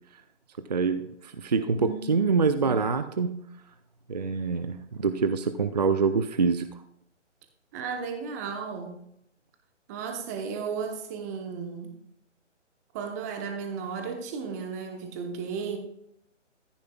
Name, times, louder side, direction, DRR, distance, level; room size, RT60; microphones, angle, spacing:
voice 1, 0.7-3.3 4.1-6.7, right 5 dB, 35° right, 0.5 m, -25 dB
voice 2, 1.5-2.3 7.7-9.0 9.9-11.9 12.9-15.8, right 5 dB, 15° right, 0.9 m, -34 dB
14.0 x 9.3 x 2.3 m
figure-of-eight pair, 145°, 37 cm